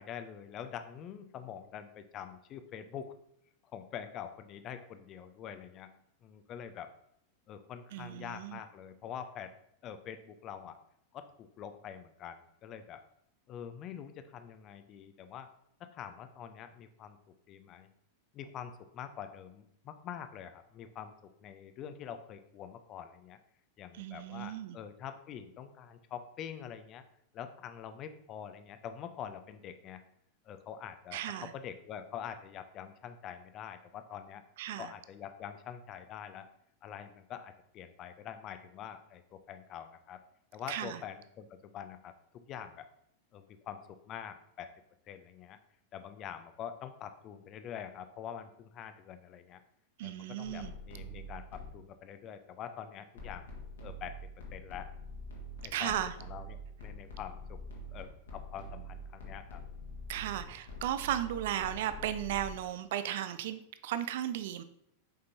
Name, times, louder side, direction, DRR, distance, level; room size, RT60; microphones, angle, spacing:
voice 1, 0.0-3.1 3.7-5.9 6.2-6.9 7.5-9.5 9.8-10.8 11.1-13.0 13.5-15.5 15.8-17.2 17.5-17.9 18.3-23.4 23.8-27.0 27.3-30.0 30.5-34.4 34.8-36.5 36.8-40.2 40.5-42.9 43.3-44.7 45.1-45.6 45.9-49.6 50.0-53.5 53.8-54.2 54.5-54.9 55.6-56.0 56.2-57.6 57.9-59.6 60.3-60.6, left 9 dB, 35° left, 10 dB, 0.5 m, -45 dB
voice 2, 7.9-8.6 23.9-24.8 31.1-31.5 34.6-34.9 40.7-41.0 50.0-50.7 55.7-56.1 60.1-64.6, right 11 dB, 55° right, 12 dB, 0.4 m, -35 dB
sound 1, 50.4-51.9 53.2-62.5, equal, 65° left, 1.5 m, -45 dB
6.8 x 5.1 x 2.8 m, 0.74 s
figure-of-eight pair, 90°, 0 cm